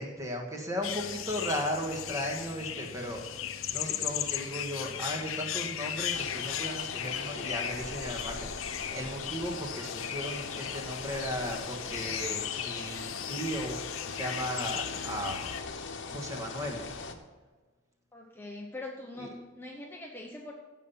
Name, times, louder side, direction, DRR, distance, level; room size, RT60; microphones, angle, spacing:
voice 1, 0.0-15.5 16.0-16.9 19.2-19.3, equal, 15° right, 1 dB, 1.7 m, -36 dB
sound 1, 0.8-15.6, left 10 dB, 80° left, 0.7 m, -37 dB
sound 2, 6.1-17.1, left 4 dB, 60° left, 1.1 m, -40 dB
voice 2, 18.1-20.5, left 2 dB, 10° left, 0 dB, 0.8 m, -42 dB
16.0 x 5.8 x 5.6 m, 1.3 s
head